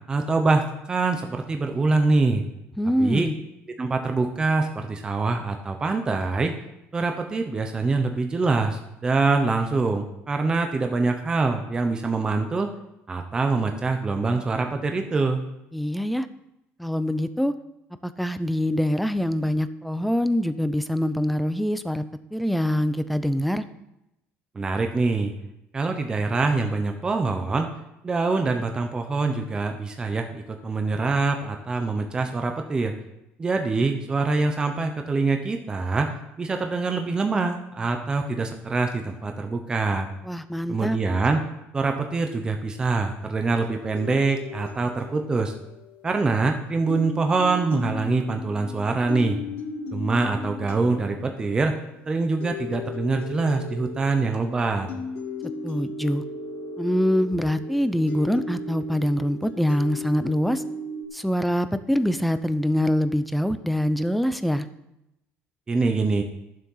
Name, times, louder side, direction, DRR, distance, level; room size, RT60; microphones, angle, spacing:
voice 1, 0.1-2.4 3.0-3.3 3.8-6.5 6.9-12.7 13.1-15.4 24.5-25.3 25.7-27.7 28.0-32.9 33.4-40.1 40.7-41.4 41.7-45.5 46.0-49.4 49.9-51.7 52.1-54.9 65.7-66.2, right 3 dB, 20° right, 5 dB, 0.9 m, -24 dB
voice 2, 2.8-3.4 15.7-16.3 16.8-17.5 18.0-22.1 22.3-23.6 40.2-41.0 55.6-56.2 56.8-60.6 61.1-64.7, equal, ahead, 11 dB, 0.5 m, -24 dB
sound 1, 43.6-46.5 46.9-61.0, left 3 dB, 50° left, 2.1 m, -36 dB
12.0 x 7.6 x 5.6 m, 0.86 s
cardioid pair, 155°, 4 cm